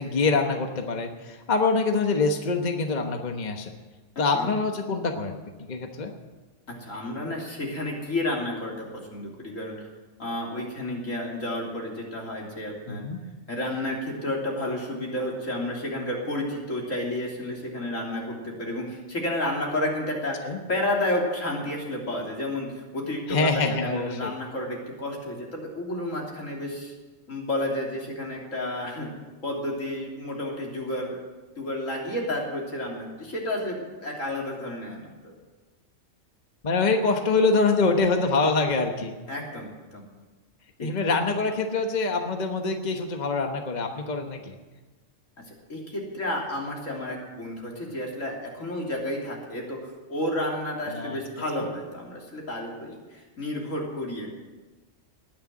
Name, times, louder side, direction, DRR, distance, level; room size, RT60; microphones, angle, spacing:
voice 1, 0.0-3.7 4.2-5.4 5.7-6.1 12.9-13.2 20.4-20.6 23.3-24.3 36.6-39.1 40.8-44.6 50.9-51.2, left 3 dB, 35° left, 4 dB, 1.2 m, -25 dB
voice 2, 6.7-9.7 10.2-13.1 13.5-23.5 23.8-26.9 27.3-29.1 29.4-31.2 31.6-35.3 39.3-40.0 40.8-41.1 45.7-49.8 50.1-54.3, left 1 dB, 80° left, -2 dB, 3.6 m, -31 dB
19.5 x 6.9 x 9.3 m, 1.3 s
omnidirectional pair, 1.3 m